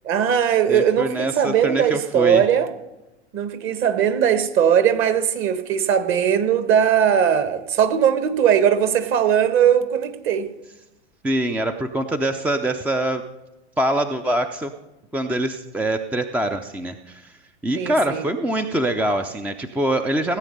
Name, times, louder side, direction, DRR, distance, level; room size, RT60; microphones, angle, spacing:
voice 1, 0.0-2.7 3.3-10.5 17.7-18.2, right 8 dB, 35° right, 1.4 m, -19 dB
voice 2, 0.7-2.4 11.2-13.2 13.8-14.7 15.1-17.3 17.6-20.4, right 1 dB, 5° right, 0.4 m, -24 dB
17.0 x 8.3 x 5.3 m
hypercardioid pair, 100°, 35 cm